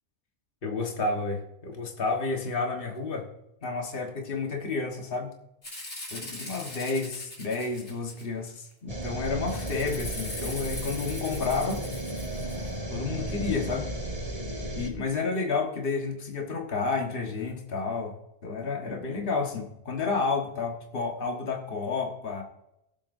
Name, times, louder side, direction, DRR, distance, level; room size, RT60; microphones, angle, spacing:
voice 1, 0.6-3.3 3.6-5.3 6.1-11.8 12.9-13.9 14.8-18.2 18.4-22.4, left 4 dB, 50° left, 1 dB, 1.7 m, -30 dB
Rattle (instrument), 5.6-8.5 9.5-12.7, left 1 dB, 75° left, 3.7 m, -41 dB
sound 1, 8.9-14.9, right 1 dB, 30° right, 1.8 m, -34 dB
21.5 x 7.9 x 2.7 m, 0.85 s
omnidirectional pair, 1.2 m